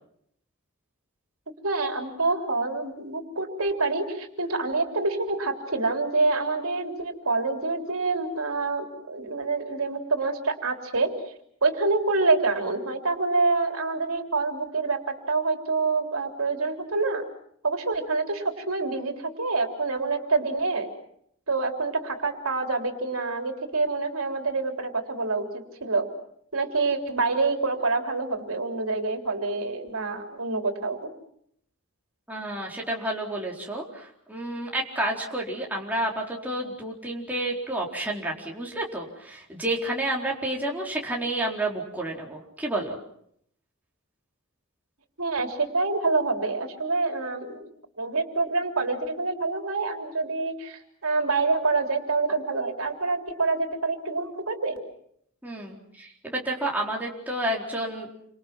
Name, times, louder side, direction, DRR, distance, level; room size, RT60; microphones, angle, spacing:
voice 1, 1.6-11.1 11.6-17.3 17.6-20.9 21.5-26.1 26.5-31.1 45.2-47.6 48.0-54.8, right 3 dB, 80° right, 4 dB, 3.7 m, -26 dB
voice 2, 32.3-43.0 55.4-58.1, right 1 dB, 10° right, -2 dB, 4.3 m, -30 dB
29.0 x 26.0 x 6.0 m, 0.69 s
head